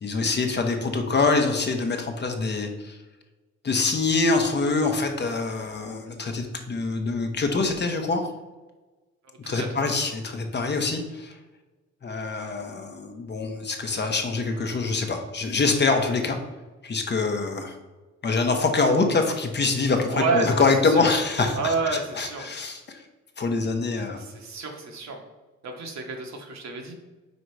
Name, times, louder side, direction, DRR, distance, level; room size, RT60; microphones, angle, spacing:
voice 1, 0.0-3.0 3.6-8.2 9.5-11.4 12.0-16.4 16.8-17.7 18.2-23.0 23.4-24.2, left 3 dB, 35° left, 4 dB, 0.9 m, -25 dB
voice 2, 20.1-21.1 21.6-22.5 24.2-25.2 25.6-26.9, right 4 dB, 65° right, 2 dB, 1.2 m, -29 dB
5.2 x 3.9 x 4.6 m, 1.2 s
cardioid pair, 90°, 30 cm